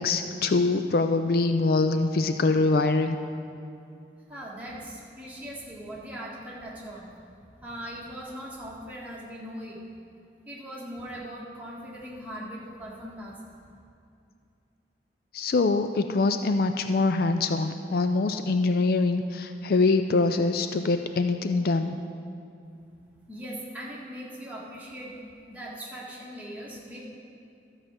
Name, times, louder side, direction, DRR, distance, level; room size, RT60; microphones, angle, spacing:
voice 1, 0.0-3.2 15.3-21.9, left 3 dB, 55° left, 8 dB, 0.4 m, -24 dB
voice 2, 4.3-7.1 7.6-9.8 10.5-13.4 23.3-25.2 25.5-27.0, equal, 10° right, -6 dB, 1.7 m, -40 dB
12.5 x 4.9 x 7.4 m, 2.5 s
head